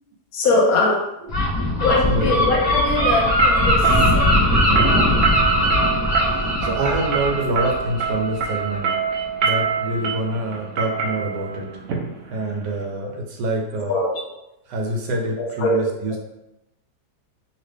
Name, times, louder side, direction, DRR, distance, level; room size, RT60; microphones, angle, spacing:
voice 1, 0.3-1.1 1.8-4.5 13.0-13.1 13.9-14.2 15.4-15.9, left 2 dB, 65° left, -1 dB, 1.0 m, -22 dB
Gull seagull, 1.3-8.8, left 1 dB, 35° left, 0.7 m, -20 dB
sound 1, 3.0-12.8, right 5 dB, 70° right, 0.7 m, -25 dB
voice 2, 6.2-8.9 9.4-11.8 12.3-14.0 14.7-16.2, right 1 dB, 85° right, 1 dB, 1.3 m, -26 dB
2.9 x 2.8 x 3.3 m, 0.91 s
omnidirectional pair, 1.8 m